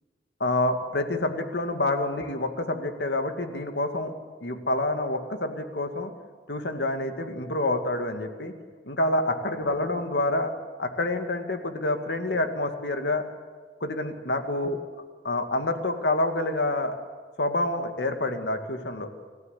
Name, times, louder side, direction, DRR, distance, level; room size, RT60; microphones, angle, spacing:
voice 1, 0.4-4.1 4.4-6.1 6.5-8.5 8.8-10.5 10.8-13.2 13.8-14.8 15.2-16.9 17.4-19.1, left 2 dB, 85° left, 6 dB, 2.2 m, -27 dB
27.0 x 14.5 x 8.4 m, 1.5 s
head